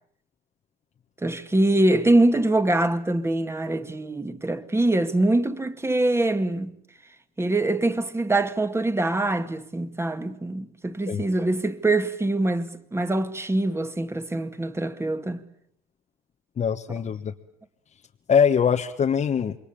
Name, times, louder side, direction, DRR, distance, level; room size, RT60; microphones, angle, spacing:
voice 1, 1.2-6.7 7.4-15.4 16.9-17.0, right 2 dB, 15° right, 2.2 m, -24 dB
voice 2, 16.6-17.3 18.3-19.6, left 7 dB, 40° left, 1.4 m, -22 dB
27.5 x 22.5 x 8.7 m
supercardioid pair, 85°, 19 cm